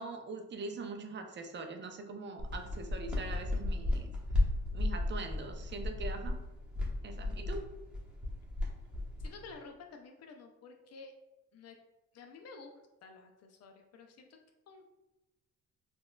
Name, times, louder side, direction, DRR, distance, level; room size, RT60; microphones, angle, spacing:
voice 1, 0.0-4.1 4.7-6.4 7.0-7.7, right 3 dB, 40° right, 5 dB, 0.5 m, -42 dB
sound 1, 2.4-9.5, left 2 dB, 5° right, 0.9 m, -34 dB
voice 2, 9.2-11.1 11.5-11.8 12.1-14.4 14.7-14.9, left 4 dB, 55° left, 4 dB, 0.4 m, -51 dB
4.1 x 2.3 x 2.2 m, 1.0 s
cardioid pair, 90°, 30 cm